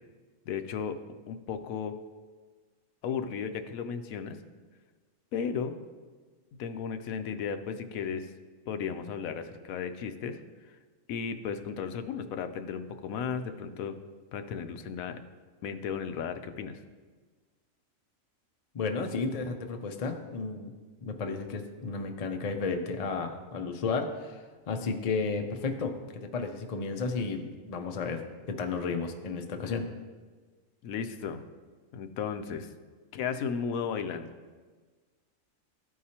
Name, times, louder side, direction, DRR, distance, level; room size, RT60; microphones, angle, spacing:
voice 1, 0.5-1.0 1.3-1.9 3.0-4.4 5.3-5.7 6.6-8.3 8.7-10.4 11.1-14.0 14.3-15.2 15.6-16.8 30.8-31.4 31.9-32.7 33.1-34.3, left 6 dB, 85° left, 8 dB, 1.0 m, -34 dB
voice 2, 18.7-20.7 21.0-28.2 28.5-29.9, left 4 dB, 50° left, 5 dB, 0.4 m, -33 dB
13.0 x 4.7 x 2.8 m, 1.4 s
omnidirectional pair, 1.4 m